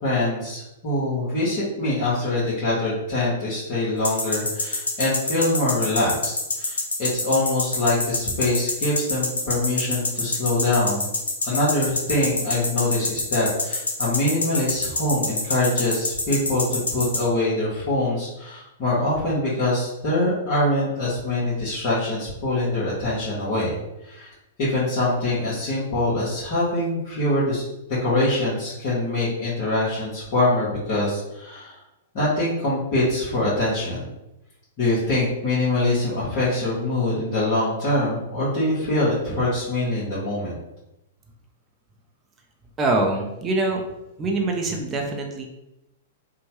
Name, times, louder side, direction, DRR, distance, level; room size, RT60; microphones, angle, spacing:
voice 1, 0.0-11.1 11.4-23.7 24.0-24.3 24.6-27.6 28.0-31.8 32.1-34.1 34.8-40.6, left 1 dB, 50° left, -10 dB, 1.1 m, -24 dB
sound 1, 4.0-17.2, left 2 dB, 85° left, 0.6 m, -25 dB
voice 2, 42.8-43.8 44.2-45.5, right 2 dB, 25° right, 1 dB, 0.5 m, -24 dB
2.8 x 2.1 x 2.9 m, 0.91 s
hypercardioid pair, 110°, 0 cm